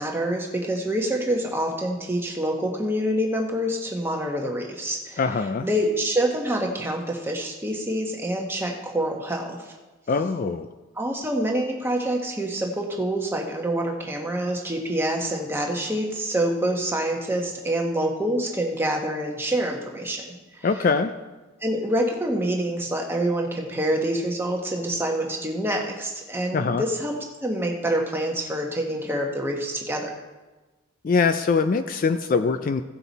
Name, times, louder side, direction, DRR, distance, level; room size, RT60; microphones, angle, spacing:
voice 1, 0.0-5.2 5.6-9.7 11.0-20.7 21.6-27.1 27.4-30.1, right 1 dB, 10° right, 1 dB, 1.1 m, -26 dB
voice 2, 5.2-5.7 10.1-10.7 20.6-21.1 26.5-26.8 31.0-32.8, left 4 dB, 40° left, 9 dB, 0.3 m, -23 dB
16.5 x 5.7 x 4.1 m, 1.2 s
head